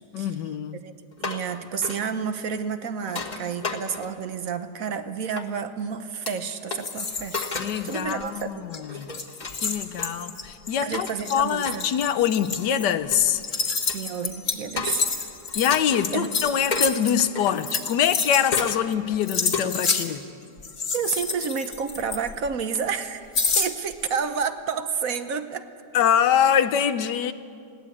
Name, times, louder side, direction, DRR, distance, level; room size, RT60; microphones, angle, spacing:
voice 1, 0.1-0.8 7.6-9.1 9.6-13.4 15.5-20.3 25.9-27.3, left 9 dB, 85° left, 13 dB, 1.4 m, -24 dB
sound 1, 1.1-1.5 1.8-2.0 3.0-4.3 5.4-5.5 6.3-6.4 6.7-6.8 7.3-7.8 8.2-8.4 8.8-10.1 10.9-11.2 11.7-11.8 12.6-14.0 14.8-15.1 15.5-16.1 16.7-17.7 18.5-18.9 19.5-19.7, left 4 dB, 30° left, 1.5 m, -33 dB
voice 2, 1.2-7.4 7.8-8.7 9.1-9.2 10.8-11.9 13.9-15.0 16.1-16.3 20.9-23.2 23.6-25.7, right 6 dB, 60° right, 10 dB, 1.2 m, -30 dB
sound 2, 6.8-8.4 8.7-8.8 9.1-18.9 19.2-20.1 20.6-22.5 23.3-24.1, left 4 dB, 50° left, 1.8 m, -29 dB
21.0 x 17.0 x 8.5 m, 2.3 s
omnidirectional pair, 1.8 m